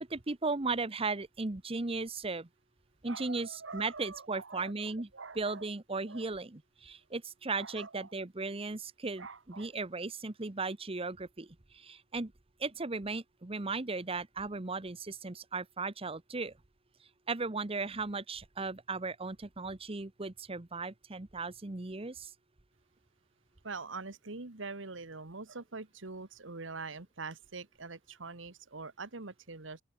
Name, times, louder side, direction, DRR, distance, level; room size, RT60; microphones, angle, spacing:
voice 1, 0.1-2.5 3.0-5.1 5.4-12.3 12.6-16.5 17.3-22.3, right 3 dB, 30° right, 1.0 m, -36 dB
voice 2, 3.1-5.7 6.1-6.3 7.6-8.1 9.2-9.7 23.6-29.8, right 4 dB, 75° right, 1.7 m, -44 dB
open air
head